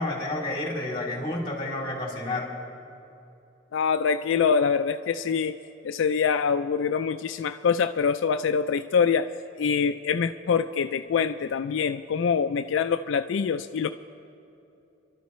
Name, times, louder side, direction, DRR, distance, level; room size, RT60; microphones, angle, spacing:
voice 1, 0.0-2.5, left 2 dB, 25° left, -1 dB, 3.2 m, -30 dB
voice 2, 3.7-5.5 5.8-9.3 9.6-13.9, left 6 dB, 80° left, 9 dB, 0.4 m, -24 dB
29.5 x 12.0 x 3.1 m, 2.8 s
head